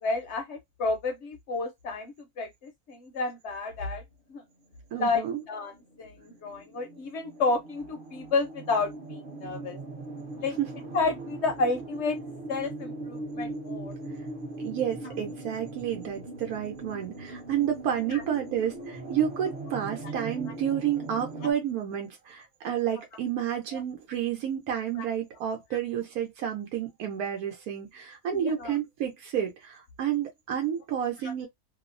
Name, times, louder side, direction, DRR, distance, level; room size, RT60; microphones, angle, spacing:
voice 1, 0.0-4.0 4.3-4.4 4.9-5.7 6.0-9.8 10.4-10.6 10.9-12.2 12.5-13.9 18.1-18.2 25.0-25.1 28.3-28.8 31.2-31.3, left 3 dB, 65° left, 0.7 m, -31 dB
sound 1, 4.6-21.5, right 2 dB, 45° right, 0.8 m, -40 dB
voice 2, 4.9-5.4 14.6-31.5, right 9 dB, 85° right, 1.1 m, -30 dB
2.7 x 2.0 x 2.4 m
omnidirectional pair, 1.5 m